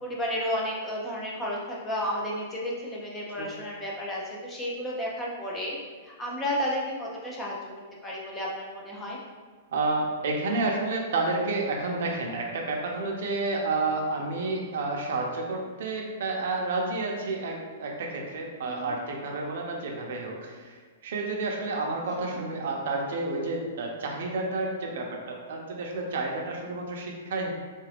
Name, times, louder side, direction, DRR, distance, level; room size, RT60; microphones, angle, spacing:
voice 1, 0.0-5.8 6.0-7.5 8.0-9.2 18.6-18.9 22.0-22.3, equal, 10° left, -4 dB, 0.5 m, -32 dB
voice 2, 9.7-27.5, right 3 dB, 60° right, 0 dB, 0.6 m, -30 dB
3.7 x 2.4 x 3.3 m, 1.5 s
hypercardioid pair, 170°, 0 cm